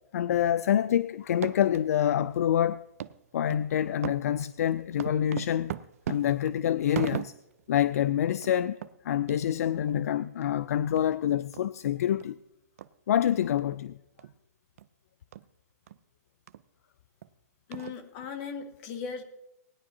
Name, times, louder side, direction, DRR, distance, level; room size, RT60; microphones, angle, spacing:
voice 1, 0.1-2.8 3.3-5.7 6.1-7.3 7.7-8.8 9.0-12.4 13.1-14.0, left 10 dB, 65° left, 0.4 m, -26 dB
sound 1, 1.2-1.9 2.3-2.4 3.0-3.2 3.5-3.7 4.0-7.6 8.0-8.1 8.3-8.5 8.8-8.9 9.3-9.4 9.9-10.0 10.4-10.5 11.0-11.1 11.5-11.6 12.2-12.3 12.8-12.9 13.6-13.8 14.2-14.4 14.8-14.9 15.3-15.4 15.9-16.0 16.5-16.6 17.2-17.3 17.7-18.3, right 11 dB, 60° right, 0.5 m, -38 dB
voice 2, 17.7-19.2, left 6 dB, 40° left, 1.7 m, -38 dB
19.0 x 10.5 x 2.8 m
hypercardioid pair, 135°, 9 cm